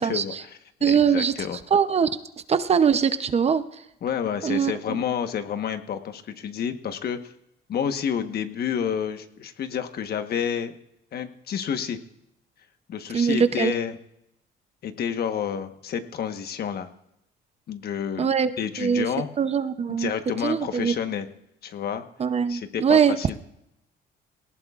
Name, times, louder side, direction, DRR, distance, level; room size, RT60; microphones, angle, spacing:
voice 1, 0.0-1.6 4.0-7.2 7.7-10.7 11.1-12.0 12.9-14.0 14.8-16.9 17.7-18.3 18.6-19.3 19.9-21.3 21.6-22.0 22.5-23.4, left 8 dB, 55° left, 8 dB, 1.2 m, -29 dB
voice 2, 0.8-1.3 1.7-2.1 2.5-3.6 4.4-4.7 13.1-13.7 18.2-18.5 18.8-19.0 19.4-20.1 20.4-20.9 22.2-23.2, right 7 dB, 35° right, 11 dB, 0.7 m, -21 dB
19.5 x 18.0 x 2.4 m, 0.80 s
cardioid pair, 130°, 19 cm